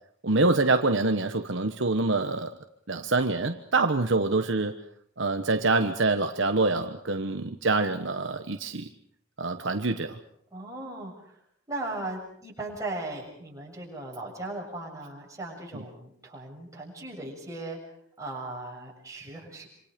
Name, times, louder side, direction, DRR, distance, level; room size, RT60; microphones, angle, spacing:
voice 1, 0.2-2.6 2.9-4.8 5.2-8.9 9.4-10.2 15.7-15.8, right 3 dB, 60° right, 7 dB, 1.2 m, -25 dB
voice 2, 10.5-11.4 11.7-17.8 18.2-19.7, right 2 dB, 15° right, -2 dB, 7.2 m, -37 dB
27.0 x 27.0 x 5.2 m, 0.64 s
head